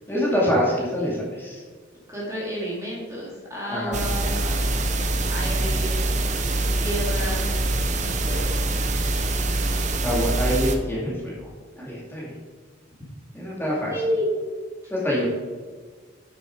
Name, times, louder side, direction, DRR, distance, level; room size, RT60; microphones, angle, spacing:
voice 1, 0.1-1.6 3.7-4.1 5.5-5.9 10.0-11.5 11.8-12.3 13.3-14.0 14.9-15.3, equal, 10° left, -5 dB, 2.4 m, -26 dB
voice 2, 2.1-4.8 5.3-6.0 6.8-7.6 8.0-8.6 13.9-14.3, equal, 15° right, -5 dB, 2.1 m, -31 dB
sound 1, 3.9-10.8, right 2 dB, 40° right, 0.7 m, -24 dB
8.6 x 6.5 x 4.7 m, 1.5 s
head